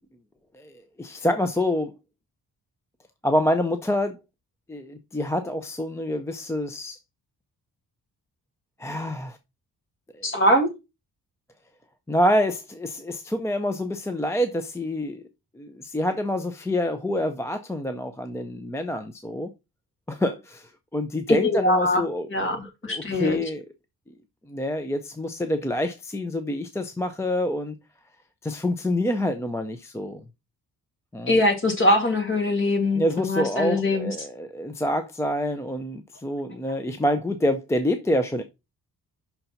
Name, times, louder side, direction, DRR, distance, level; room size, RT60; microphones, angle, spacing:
voice 1, 0.5-1.9 3.2-4.2 4.7-7.0 8.8-9.4 10.2-10.3 12.1-15.2 15.6-19.5 20.1-22.6 22.8-23.6 24.5-27.8 28.4-30.2 31.1-31.3 33.0-38.4, left 1 dB, 10° left, 0.4 m, -27 dB
voice 2, 10.2-10.7 21.3-22.0 22.3-23.4 31.3-34.3, left 1 dB, 35° left, 1.9 m, -22 dB
5.7 x 3.9 x 5.6 m
wide cardioid pair, 180°, 37 cm